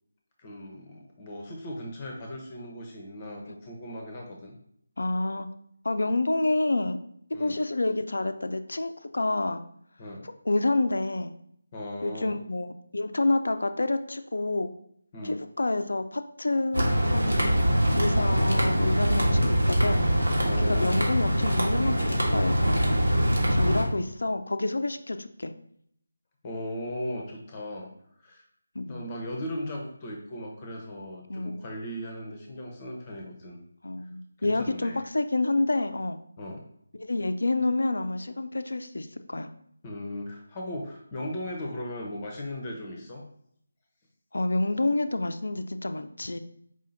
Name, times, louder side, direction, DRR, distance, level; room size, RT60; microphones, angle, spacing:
voice 1, 0.4-4.6 7.3-7.5 10.0-10.3 11.7-12.3 15.1-15.4 20.4-21.0 26.4-27.9 28.2-28.4 28.8-33.6 34.0-34.1 34.4-35.0 36.4-36.6 39.8-43.2, left 1 dB, 25° left, 0 dB, 0.7 m, -37 dB
voice 2, 5.0-5.5 5.8-7.0 7.4-9.6 10.2-11.3 12.0-12.7 12.9-14.7 15.2-20.0 20.6-22.9 23.5-25.5 28.7-29.1 31.3-31.6 33.8-36.2 36.9-39.5 44.3-46.4, left 2 dB, 70° left, 9 dB, 0.4 m, -28 dB
sound 1, 16.7-23.8, equal, 80° right, 1.4 m, -23 dB
4.8 x 2.7 x 4.0 m, 0.70 s
figure-of-eight pair, 160°, 0 cm